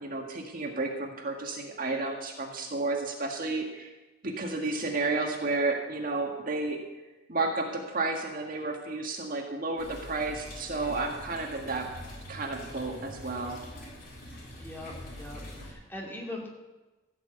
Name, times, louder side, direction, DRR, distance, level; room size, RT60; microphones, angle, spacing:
voice 1, 0.0-3.9 4.2-6.8 7.3-11.9 12.3-13.6, right 3 dB, 50° right, 2 dB, 1.7 m, -32 dB
sound 1, 9.8-15.7, left 1 dB, 50° left, 3.9 m, -44 dB
voice 2, 14.6-16.5, left 1 dB, 10° left, -2 dB, 2.6 m, -41 dB
15.5 x 6.1 x 8.0 m, 1.1 s
head